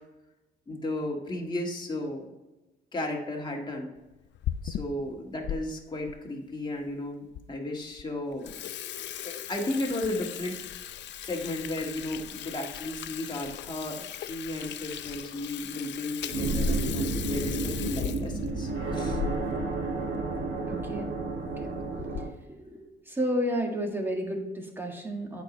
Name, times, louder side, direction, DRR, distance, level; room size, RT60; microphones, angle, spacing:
voice 1, 0.7-2.3 2.9-3.9 4.6-8.6 9.2-19.2, left 1 dB, 20° left, 0 dB, 1.7 m, -34 dB
Water tap faucet / Sink (filling or washing), 4.1-5.6 6.1-6.2 6.9-7.0 7.3-7.4 7.8-8.0 8.3-19.7 20.0-20.1 20.4-20.5 21.3-21.6 22.0-22.4, left 10 dB, 65° left, 0.5 m, -38 dB
sound 1, 16.2-22.3, right 3 dB, 70° right, 1.6 m, -31 dB
voice 2, 20.4-21.1 21.5-22.1 23.1-25.4, equal, 10° right, 1 dB, 1.8 m, -32 dB
8.7 x 4.6 x 5.2 m, 1.0 s
cardioid pair, 90°, 20 cm